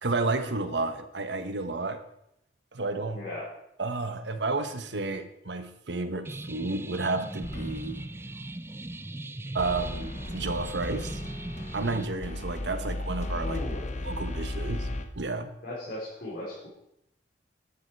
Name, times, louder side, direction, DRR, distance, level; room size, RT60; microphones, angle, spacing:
voice 1, 0.0-2.0 2.7-3.2 3.8-8.1 9.5-11.2 11.7-13.6 14.0-14.9 15.2-15.5, right 3 dB, 70° right, 9 dB, 1.2 m, -31 dB
voice 2, 3.1-3.5 13.3-13.9 15.6-16.7, left 2 dB, 55° left, -8 dB, 4.5 m, -37 dB
sound 1, 6.2-12.0, right 1 dB, 15° right, 0.4 m, -39 dB
sound 2, 7.4-8.1 9.6-15.1, left 1 dB, 40° left, 1.1 m, -35 dB
13.0 x 9.6 x 4.7 m, 0.80 s
head